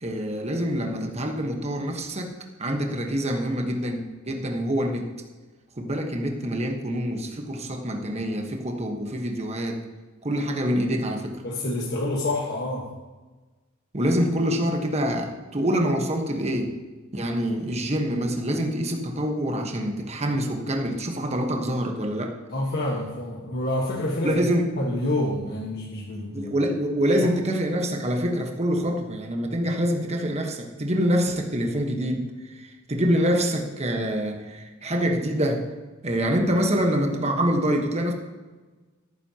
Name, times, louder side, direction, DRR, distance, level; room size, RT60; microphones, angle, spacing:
voice 1, 0.0-5.1 5.8-9.8 10.2-11.4 13.9-16.7 17.1-22.3 24.2-24.7 26.3-32.3 32.6-35.7 36.0-38.1, equal, 30° right, 2 dB, 1.3 m, -26 dB
voice 2, 11.4-12.9 22.5-24.4 24.8-26.5, left 1 dB, 50° left, -3 dB, 1.5 m, -27 dB
17.5 x 9.5 x 2.9 m, 1.3 s
head